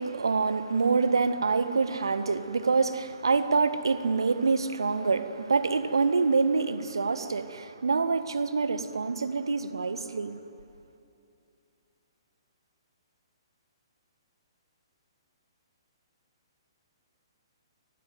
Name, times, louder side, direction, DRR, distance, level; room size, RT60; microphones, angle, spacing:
voice 1, 0.0-10.4, right 4 dB, 65° right, 1.7 m, -26 dB
28.0 x 21.0 x 9.4 m
figure-of-eight pair, 125°, 3 cm